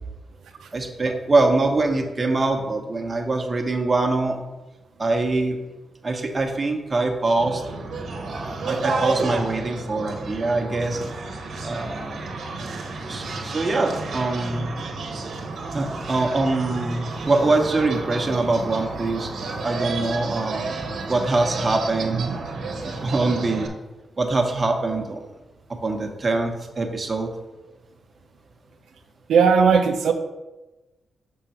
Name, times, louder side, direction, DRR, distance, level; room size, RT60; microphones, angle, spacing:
voice 1, 0.7-4.4 5.0-5.6 6.0-7.6 8.3-11.0 11.6-12.2 13.1-14.7 15.7-20.7 21.1-22.5 23.0-23.7 24.2-25.2 25.8-27.3, right 2 dB, 30° right, 2 dB, 1.1 m, -23 dB
sound 1, 7.4-23.7, right 3 dB, 70° right, 1.1 m, -31 dB
voice 2, 29.3-30.1, right 6 dB, 85° right, 3 dB, 0.6 m, -18 dB
6.5 x 3.7 x 5.8 m, 1.1 s
cardioid pair, 90°, 0 cm